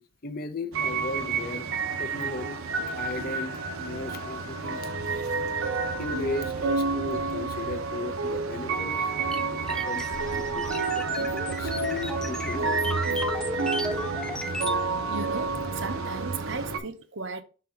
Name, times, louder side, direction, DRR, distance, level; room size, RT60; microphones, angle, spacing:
voice 1, 0.0-1.7 2.0-2.6 2.8-4.9 6.0-10.3 10.5-11.1 11.5-13.5 16.5-16.8, left 3 dB, 45° left, 0.6 m, -37 dB
sound 1, 0.7-16.8, right 4 dB, 90° right, 0.8 m, -29 dB
sound 2, 9.3-14.8, left 1 dB, 5° left, 0.4 m, -35 dB
voice 2, 15.1-15.5 15.8-17.4, right 4 dB, 60° right, 0.7 m, -35 dB
5.9 x 3.9 x 4.4 m
head